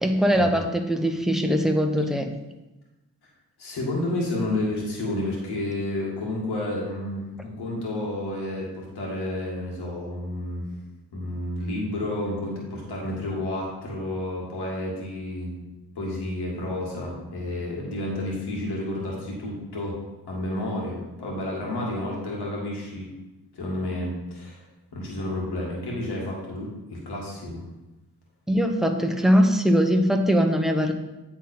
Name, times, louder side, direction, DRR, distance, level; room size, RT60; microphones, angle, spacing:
voice 1, 0.0-2.3 28.5-30.9, equal, ahead, 4 dB, 0.9 m, -21 dB
voice 2, 3.6-10.7 11.1-15.7 16.0-20.0 20.3-23.1 23.5-24.6 24.9-27.7, left 1 dB, 90° left, -3 dB, 2.1 m, -30 dB
9.1 x 3.9 x 4.4 m, 1.0 s
cardioid pair, 60°, 38 cm